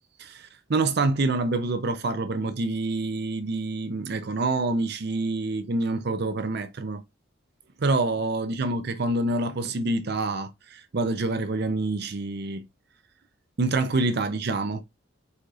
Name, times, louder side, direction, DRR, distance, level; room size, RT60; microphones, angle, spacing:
voice 1, 0.2-7.0 7.8-12.7 13.6-14.8, right 2 dB, 50° right, 0.6 m, -27 dB
4.7 x 4.1 x 2.4 m
head